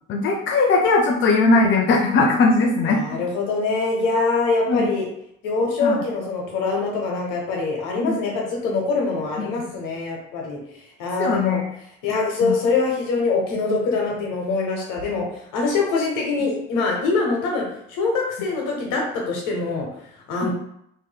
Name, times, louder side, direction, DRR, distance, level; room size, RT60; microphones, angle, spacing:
voice 1, 0.1-3.0 4.7-4.8 5.8-6.0 8.0-8.1 11.2-11.6 12.4-12.5 20.4-20.5, left 3 dB, 35° left, 1 dB, 0.5 m, -19 dB
voice 2, 2.8-5.1 5.4-11.6 12.0-19.9 20.3-20.5, left 3 dB, 65° left, 0 dB, 1.1 m, -24 dB
3.1 x 2.9 x 2.2 m, 0.75 s
hypercardioid pair, 65°, 33 cm